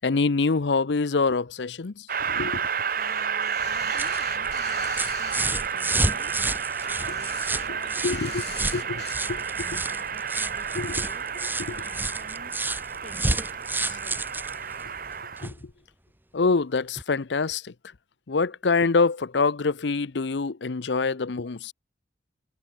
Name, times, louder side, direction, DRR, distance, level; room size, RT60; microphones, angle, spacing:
voice 1, 0.0-2.7 8.0-8.4 8.7-8.8 9.3-9.7 10.7-11.0 11.6-11.8 15.4-15.7 16.3-17.7 18.3-21.7, left 4 dB, 80° left, 0.7 m, -25 dB
Train, 2.1-15.5, right 6 dB, 55° right, 1.6 m, -31 dB
sound 1, 2.9-5.5 5.9-9.2, left 7 dB, 65° left, 7.0 m, -42 dB
voice 2, 2.9-6.3 6.8-11.2 11.6-12.5 13.0-13.5 13.8-14.2, left 2 dB, 45° left, 3.5 m, -48 dB
sound 2, 3.6-15.6 17.0-17.1, right 2 dB, 10° right, 1.1 m, -31 dB
head